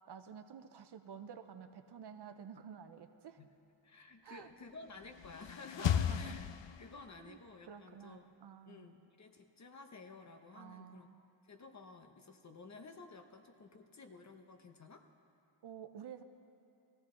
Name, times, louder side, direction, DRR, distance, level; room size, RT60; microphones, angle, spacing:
voice 1, 0.1-3.4 4.2-4.5 5.8-6.4 7.2-7.4 7.7-8.9 10.5-11.2 15.6-16.2, right 7 dB, 60° right, 9 dB, 0.7 m, -51 dB
voice 2, 3.8-6.5 6.8-8.4 8.7-11.1 11.4-15.0, left 3 dB, 40° left, 6 dB, 0.8 m, -53 dB
sound 1, 4.9-7.3, left 9 dB, 75° left, 0.6 m, -36 dB
18.0 x 14.5 x 3.8 m, 2.8 s
wide cardioid pair, 160°, 44 cm